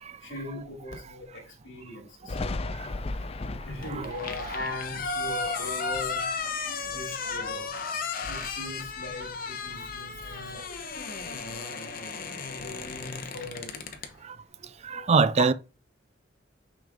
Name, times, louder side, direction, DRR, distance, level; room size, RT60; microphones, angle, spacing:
voice 1, 0.2-2.6 3.3-10.6 12.4-14.2 14.9-15.5, left 2 dB, 85° left, 2.6 m, -40 dB
Thunder, 2.3-7.7 8.1-9.5 9.8-11.5, left 2 dB, 30° left, 0.4 m, -39 dB
sound 1, 3.8-14.1, left 4 dB, 50° left, 1.0 m, -35 dB
voice 2, 14.8-15.5, right 5 dB, 35° right, 0.4 m, -22 dB
6.2 x 5.3 x 3.5 m
head